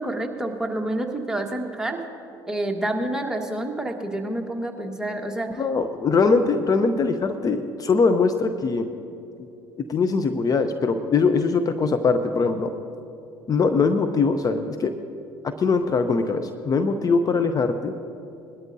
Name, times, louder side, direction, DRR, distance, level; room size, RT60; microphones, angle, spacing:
voice 1, 0.0-2.0 2.5-5.6, right 1 dB, 5° right, 1 dB, 1.6 m, -28 dB
voice 2, 5.5-8.9 9.4-9.5 9.9-12.7 13.5-14.9 15.4-17.9, left 4 dB, 35° left, 8 dB, 0.7 m, -22 dB
20.5 x 12.5 x 2.7 m, 2.7 s
hypercardioid pair, 70°, 10 cm